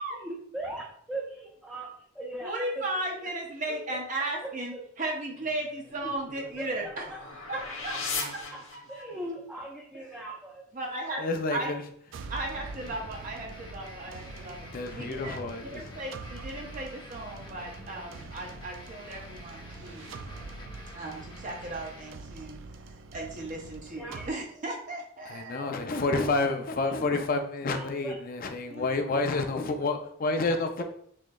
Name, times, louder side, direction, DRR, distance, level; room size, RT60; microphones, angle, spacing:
voice 1, 0.0-2.8 3.2-3.3 4.7-4.8 6.6-6.7 7.1-8.0 8.5-8.6 8.9-10.6 24.0-24.3 27.7-28.1, right 1 dB, 5° right, -5 dB, 0.6 m, -39 dB
voice 2, 2.4-7.1 7.5-7.9 8.3-8.4 8.7-9.1 9.9-10.0 10.7-11.2 11.5-11.7 12.3-14.7 14.9-15.2 15.7-20.1 20.9-22.6 22.9-25.7 28.7-28.8, right 2 dB, 40° right, 0 dB, 0.7 m, -36 dB
sound 1, 5.9-9.3, left 4 dB, 85° left, 1.1 m, -38 dB
voice 3, 11.2-11.9 12.8-13.3 14.1-14.2 14.7-16.0 20.1-20.5 25.2-30.8, left 3 dB, 45° left, 5 dB, 0.5 m, -30 dB
sound 2, 12.1-24.3, right 3 dB, 65° right, 0.4 m, -45 dB
sound 3, 12.5-22.1, left 1 dB, 25° left, 0.8 m, -48 dB
6.2 x 3.1 x 2.3 m, 0.65 s
head